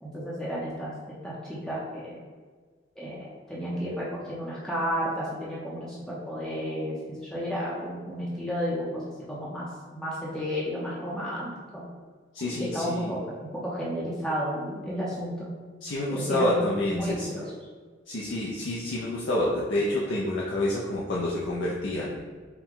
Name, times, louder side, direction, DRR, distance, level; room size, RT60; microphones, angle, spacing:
voice 1, 0.0-0.9 1.2-2.2 3.0-9.0 9.3-11.8 12.6-13.2 13.6-15.5 16.1-16.6 16.9-17.4, equal, 5° left, -7 dB, 0.7 m, -32 dB
voice 2, 12.3-13.1 15.8-17.3 18.1-22.2, left 1 dB, 75° left, -6 dB, 0.6 m, -28 dB
4.7 x 2.2 x 3.7 m, 1.5 s
head